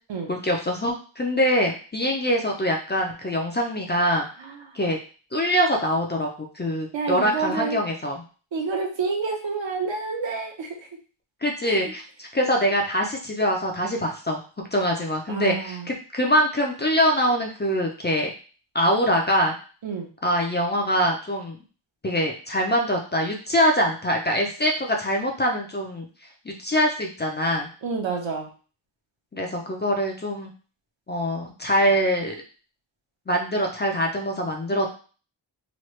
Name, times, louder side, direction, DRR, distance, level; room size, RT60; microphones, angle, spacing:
voice 1, 0.3-4.3 4.7-5.0 5.3-6.3 6.5-8.2 11.4-14.4 14.7-18.3 18.7-19.5 20.2-21.6 22.0-26.1 26.5-27.7 29.3-30.5 31.1-32.3 33.3-35.0, equal, 20° left, 0 dB, 0.4 m, -24 dB
voice 2, 4.4-4.8 6.9-7.8 8.5-10.8 11.6-11.9 15.3-15.9 19.8-20.1 27.8-28.5, right 4 dB, 65° right, 2 dB, 0.9 m, -29 dB
3.1 x 2.3 x 3.1 m, 0.38 s
wide cardioid pair, 105°, 49 cm